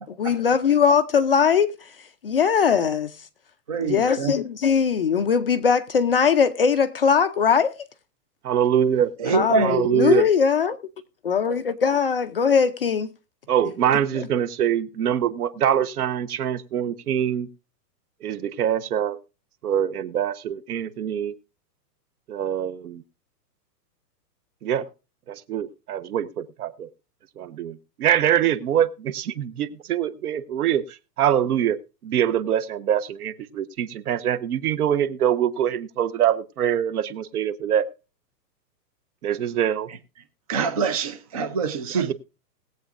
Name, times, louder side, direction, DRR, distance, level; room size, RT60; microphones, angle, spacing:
voice 1, 0.2-1.7 2.2-3.1 3.8-7.7 9.3-10.8 11.2-13.1 13.9-14.0, left 6 dB, 40° left, 0.4 m, -20 dB
voice 2, 3.7-4.3 9.2-9.7 40.5-42.1, right 5 dB, 25° right, 0.5 m, -24 dB
voice 3, 8.4-9.1 9.6-10.3 13.5-17.5 18.2-19.2 19.6-21.3 22.3-23.0 24.6-24.9 25.3-26.9 27.4-31.8 32.0-37.9 39.2-39.9 41.9-42.1, right 9 dB, 65° right, 1.1 m, -24 dB
20.5 x 8.0 x 2.5 m
hypercardioid pair, 170°, 49 cm